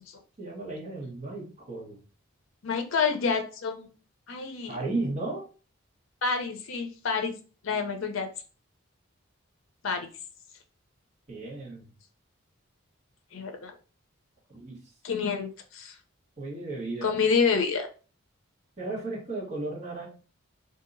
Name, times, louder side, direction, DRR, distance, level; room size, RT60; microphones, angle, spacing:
voice 1, 0.4-2.0 4.7-5.5 11.3-11.8 14.5-14.8 16.4-17.1 18.8-20.1, right 2 dB, 35° right, -4 dB, 1.2 m, -34 dB
voice 2, 2.6-3.9 4.3-4.8 6.2-7.3 7.6-8.3 9.8-10.1 13.3-13.7 15.0-16.0 17.0-17.9, left 5 dB, 70° left, 5 dB, 0.5 m, -28 dB
2.8 x 2.7 x 2.5 m, 0.36 s
head